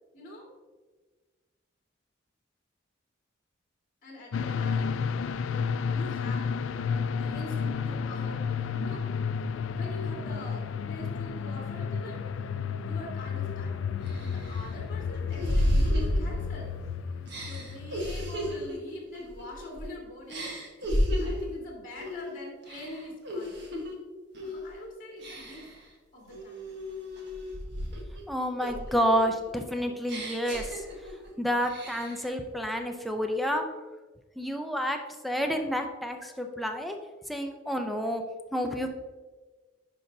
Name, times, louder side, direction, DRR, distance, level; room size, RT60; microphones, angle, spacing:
voice 1, 0.1-0.5 4.0-5.0 5.9-6.5 6.9-8.4 8.8-9.0 9.7-12.2 12.9-16.7 17.1-20.9 21.2-23.7 24.4-25.7 26.1-26.7, left 1 dB, 45° left, -3 dB, 1.9 m, -44 dB
sound 1, 4.3-18.7, left 6 dB, 75° left, 0.3 m, -32 dB
sound 2, 13.4-13.5 14.1-16.8 17.3-19.9 20.3-21.5 22.0-22.3 22.6-23.9 24.3-24.7 25.2-25.8 26.3-28.2 28.6-31.3 31.6-32.3, equal, 60° right, 1.4 m, -32 dB
voice 2, 28.3-30.8 31.4-33.7 34.4-35.0 35.2-37.0 37.3-38.2 38.5-38.9, equal, ahead, 3 dB, 0.5 m, -29 dB
10.5 x 5.3 x 2.7 m, 1.3 s
head